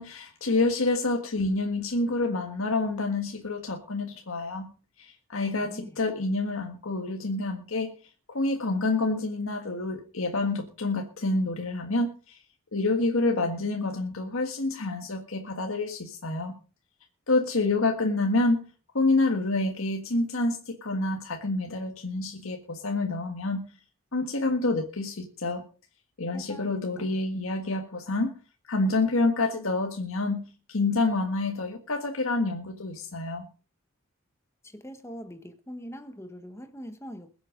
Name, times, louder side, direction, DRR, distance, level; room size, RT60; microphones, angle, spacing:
voice 1, 0.0-4.7 5.0-7.9 8.3-12.4 12.7-16.5 17.3-18.6 18.9-23.6 24.1-25.6 26.2-28.3 28.7-30.4 30.7-33.5, left 2 dB, 80° left, 1.7 m, -28 dB
voice 2, 26.3-26.7 34.8-37.3, equal, 15° left, 1.2 m, -42 dB
21.5 x 8.0 x 5.1 m
head